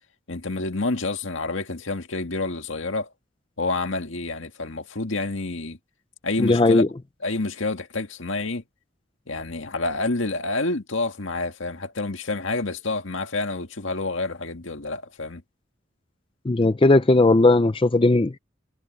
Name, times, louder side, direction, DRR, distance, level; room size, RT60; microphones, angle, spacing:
voice 1, 0.3-3.1 3.6-5.8 6.2-6.8 7.2-8.6 9.3-15.4, left 3 dB, 80° left, 1.9 m, -28 dB
voice 2, 6.4-6.9 16.4-18.4, left 2 dB, 25° left, 0.5 m, -17 dB
head